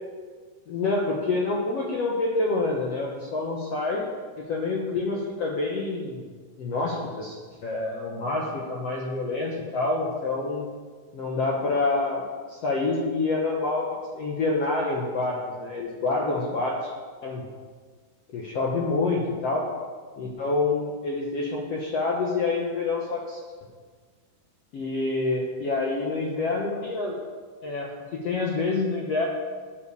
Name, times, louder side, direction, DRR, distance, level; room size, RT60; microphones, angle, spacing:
voice 1, 0.7-4.0 4.4-6.2 6.6-7.4 7.6-10.7 11.1-12.2 12.5-13.8 14.1-16.9 17.2-17.4 18.3-19.7 20.2-23.4 24.7-27.2 27.6-29.3, left 3 dB, 85° left, -2 dB, 1.4 m, -27 dB
10.5 x 8.7 x 7.0 m, 1.5 s
omnidirectional pair, 4.8 m